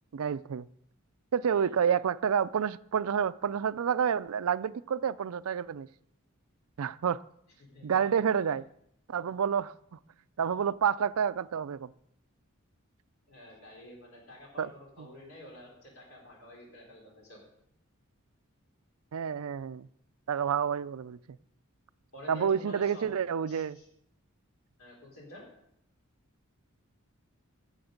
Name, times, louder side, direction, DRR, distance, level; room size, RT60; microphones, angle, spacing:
voice 1, 0.1-0.7 1.3-5.9 6.8-7.2 7.8-8.6 9.1-10.0 10.4-11.9 14.6-14.7 15.0-15.1 19.1-19.9 20.3-21.2 22.3-23.8, right 7 dB, 80° right, 0.4 m, -29 dB
voice 2, 1.5-1.9 7.7-8.0 9.2-9.3 13.3-17.4 22.1-23.1 23.5-23.9 24.8-25.4, left 1 dB, 70° left, 3.8 m, -49 dB
15.0 x 6.5 x 5.2 m
head